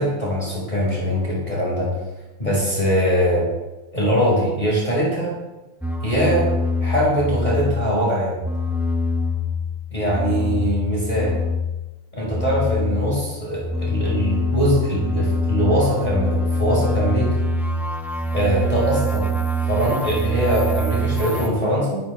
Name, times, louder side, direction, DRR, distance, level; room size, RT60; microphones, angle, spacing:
voice 1, 0.0-1.9 2.4-3.4 3.9-5.3 6.0-6.5 6.8-8.3 9.9-11.4 12.1-17.3 18.3-19.3 19.6-22.0, equal, 20° left, -6 dB, 5.4 m, -22 dB
sound 1, 5.8-8.0 8.3-11.9 12.2-21.5, left 1 dB, ahead, 0.8 m, -24 dB
22.0 x 11.0 x 3.4 m, 1.1 s
omnidirectional pair, 2.4 m